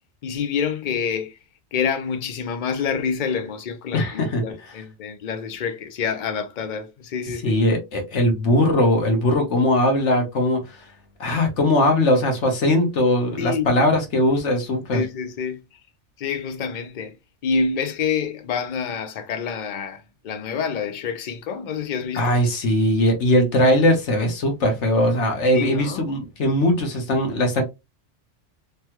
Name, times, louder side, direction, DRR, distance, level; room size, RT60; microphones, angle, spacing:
voice 1, 0.2-1.4 1.7-7.6 13.4-13.8 14.9-15.6 16.2-17.2 17.4-22.4 25.5-26.0, left 6 dB, 50° left, 0.6 m, -27 dB
voice 2, 3.9-4.4 7.4-10.8 11.2-15.0 22.1-27.6, left 1 dB, 70° left, 1.3 m, -20 dB
3.4 x 2.2 x 2.9 m
omnidirectional pair, 1.3 m